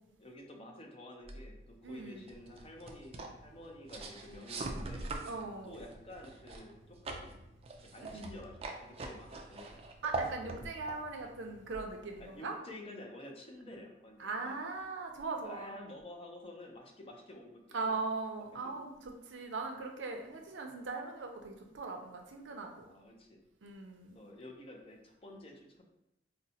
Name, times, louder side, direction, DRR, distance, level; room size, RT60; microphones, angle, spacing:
voice 1, 0.2-5.0 5.6-7.4 7.8-9.8 10.2-10.3 12.2-14.6 15.4-18.0 18.6-18.7 22.9-23.4 24.1-25.8, left 1 dB, 30° left, 1 dB, 0.5 m, -50 dB
sound 1, 1.2-12.4, right 3 dB, 35° right, 0.3 m, -44 dB
voice 2, 1.8-2.2 5.3-5.8 8.1-8.3 10.0-12.5 14.2-15.8 17.7-22.9 23.6-24.2, right 3 dB, 85° right, 3 dB, 0.5 m, -40 dB
4.0 x 2.1 x 2.7 m, 0.88 s
head